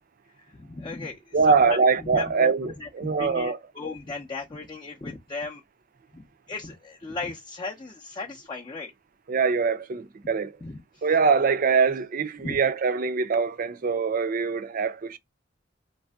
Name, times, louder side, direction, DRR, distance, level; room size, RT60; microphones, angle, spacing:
voice 1, 0.4-2.9 3.2-5.6 6.1-8.9 10.6-11.0 12.4-12.6, left 3 dB, 25° left, 0.5 m, -36 dB
voice 2, 1.3-3.6 9.3-10.6 11.0-15.2, right 5 dB, 50° right, 0.4 m, -23 dB
3.3 x 2.6 x 2.2 m
head